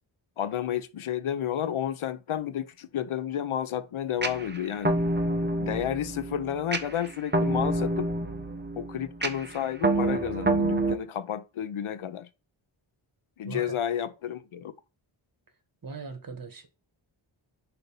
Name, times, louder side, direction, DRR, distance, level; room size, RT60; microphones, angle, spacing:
voice 1, 0.4-5.0 5.6-8.1 8.7-12.3 13.4-14.7, left 10 dB, 75° left, 0.7 m, -31 dB
sound 1, 4.2-11.0, right 2 dB, 20° right, 0.8 m, -28 dB
voice 2, 15.8-16.7, right 4 dB, 45° right, 1.5 m, -39 dB
5.3 x 4.2 x 5.5 m
wide cardioid pair, 130°, 49 cm